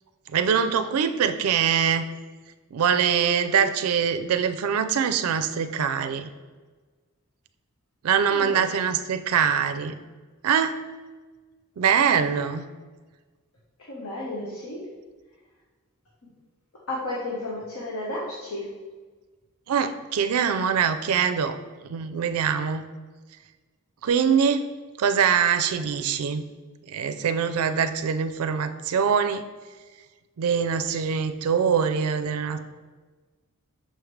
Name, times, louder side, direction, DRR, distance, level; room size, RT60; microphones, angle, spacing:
voice 1, 0.3-2.1 2.7-6.3 8.0-10.0 10.4-10.8 11.8-12.6 19.7-21.6 21.8-22.8 24.0-24.7 25.0-26.4 26.9-29.4 30.4-32.6, right 7 dB, 85° right, 9 dB, 0.4 m, -23 dB
voice 2, 8.3-8.6 13.9-14.8 16.9-18.7, left 1 dB, 80° left, -5 dB, 1.1 m, -32 dB
6.4 x 4.9 x 3.2 m, 1.3 s
head